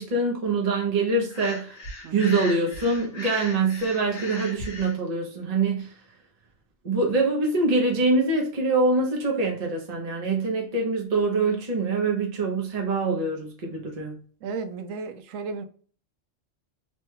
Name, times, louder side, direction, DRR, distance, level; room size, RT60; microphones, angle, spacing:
voice 1, 0.0-1.8 2.1-5.9 6.8-14.2, right 3 dB, 40° right, 0.7 m, -24 dB
Breathing, 1.3-4.9, left 2 dB, 55° left, 1.2 m, -38 dB
voice 2, 14.4-15.6, right 4 dB, 80° right, 0.9 m, -34 dB
3.1 x 2.2 x 3.2 m
omnidirectional pair, 1.3 m